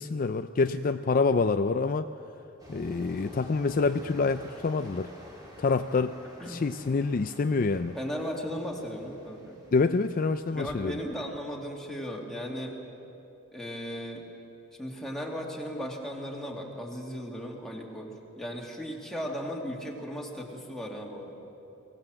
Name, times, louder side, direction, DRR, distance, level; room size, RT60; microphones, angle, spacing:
voice 1, 0.0-2.1 2.7-5.1 5.6-6.2 6.4-8.0 9.7-11.0, left 4 dB, 40° left, 9 dB, 0.4 m, -26 dB
sound 1, 2.6-11.1, equal, 15° right, 3.3 m, -50 dB
voice 2, 7.9-9.6 10.5-12.7 13.5-14.2 14.8-21.3, equal, ahead, -2 dB, 2.4 m, -36 dB
23.0 x 17.5 x 7.8 m, 2.9 s
head